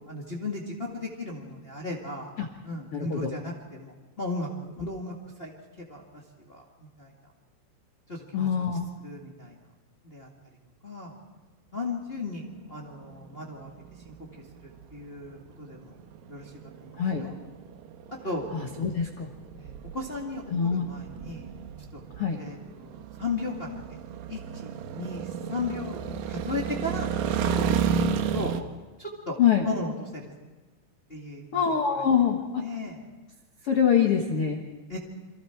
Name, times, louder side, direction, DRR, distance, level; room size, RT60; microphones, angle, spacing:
voice 1, 0.1-2.3 2.6-4.5 4.8-5.5 5.9-6.0 6.5-7.1 8.1-8.6 9.0-9.5 10.1-10.3 10.8-11.1 11.7-12.4 12.7-13.7 14.0-14.1 14.9-15.9 16.3-16.4 16.8-17.3 18.1-18.5 19.6-21.5 21.9-22.0 22.3-23.8 24.3-26.0 26.3-27.1 27.5-28.0 28.3-28.5 29.0-29.4 29.6-30.2 31.1-31.6 32.6-33.0 34.9-35.0, left 2 dB, 30° left, -1 dB, 1.1 m, -35 dB
voice 2, 2.9-3.3 8.3-8.9 17.0-17.2 18.5-19.3 20.5-20.8 22.2-22.4 29.4-29.6 31.5-32.6 33.7-34.6, left 7 dB, 80° left, 3 dB, 1.2 m, -24 dB
sound 1, 12.5-28.6, right 7 dB, 70° right, 2.5 m, -33 dB
28.5 x 23.5 x 4.6 m, 1.2 s
omnidirectional pair, 4.9 m